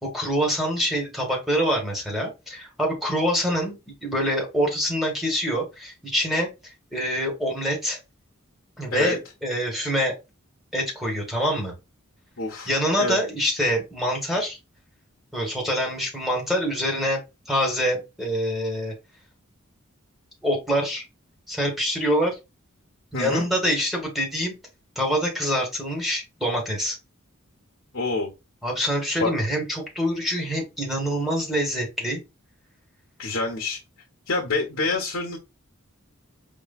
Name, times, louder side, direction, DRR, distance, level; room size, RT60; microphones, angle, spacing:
voice 1, 0.0-8.0 8.8-10.1 10.7-11.7 12.7-14.6 15.3-17.2 17.5-18.9 20.4-21.1 21.5-22.3 23.1-24.5 24.9-27.0 28.6-32.2, equal, ahead, -2 dB, 1.3 m, -25 dB
voice 2, 12.4-12.7 13.0-13.3 23.1-23.4 27.9-28.3 29.2-29.3 33.2-33.8 34.3-35.4, left 3 dB, 65° left, -1 dB, 1.0 m, -26 dB
5.1 x 3.0 x 2.3 m, 0.24 s
head